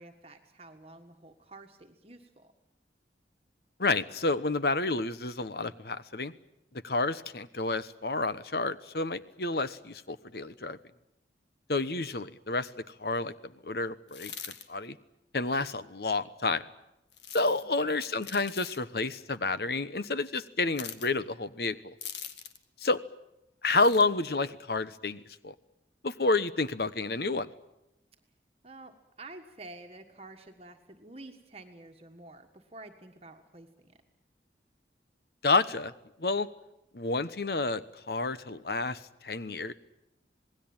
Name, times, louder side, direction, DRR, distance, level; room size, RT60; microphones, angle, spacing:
voice 1, 0.0-2.5 17.6-18.0 28.6-33.9, right 2 dB, 35° right, 5 dB, 1.5 m, -49 dB
voice 2, 3.8-6.3 6.8-10.8 11.7-12.7 13.0-13.3 13.6-14.3 14.7-15.0 15.3-16.6 17.3-21.9 22.8-23.0 23.6-25.5 26.0-27.5 35.4-35.9 36.2-36.5 36.9-39.7, left 3 dB, 60° left, 13 dB, 1.1 m, -29 dB
sound 1, 14.1-14.7 17.1-17.6 18.2-18.8 20.7-21.1 22.0-22.6 23.7-24.1, left 8 dB, 85° left, 1.8 m, -42 dB
27.5 x 19.5 x 8.9 m, 0.87 s
head